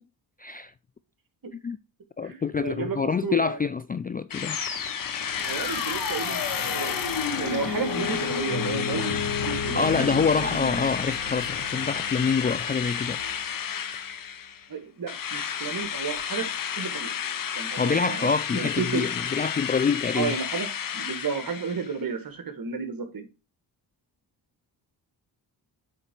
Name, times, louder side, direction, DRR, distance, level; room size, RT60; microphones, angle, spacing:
voice 1, 0.4-0.7 1.6-1.8 2.2-4.6 9.7-13.2 17.8-20.3, left 5 dB, 25° left, 0.3 m, -26 dB
voice 2, 2.2-3.6 5.5-6.4 6.7-7.0 7.4-10.9 14.7-16.5 16.8-17.1 17.6-19.0 20.1-23.3, right 5 dB, 50° right, 1.7 m, -32 dB
Drill, 4.3-14.7 15.1-22.0, left 8 dB, 50° left, 0.8 m, -32 dB
sound 1, 4.4-13.6, left 5 dB, 65° left, 1.9 m, -33 dB
8.2 x 3.8 x 4.4 m
cardioid pair, 60°, 43 cm